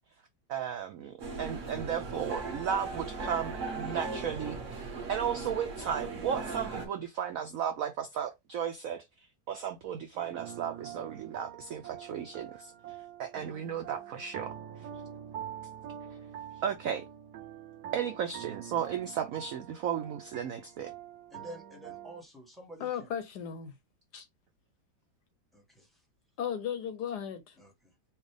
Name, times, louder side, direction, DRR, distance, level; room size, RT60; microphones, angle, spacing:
voice 1, 0.5-9.0 9.5-14.6 16.6-17.0 17.9-20.9, right 8 dB, 85° right, 0.7 m, -35 dB
sound 1, 1.2-6.9, right 3 dB, 45° right, 1.4 m, -38 dB
sound 2, 10.1-22.2, right 10 dB, 65° right, 1.1 m, -45 dB
voice 2, 21.3-23.1 25.5-26.0 27.6-27.9, right 1 dB, ahead, 1.0 m, -49 dB
voice 3, 22.8-23.7 24.1-24.3 26.4-27.6, left 8 dB, 70° left, 1.0 m, -35 dB
4.5 x 2.3 x 3.2 m
omnidirectional pair, 2.1 m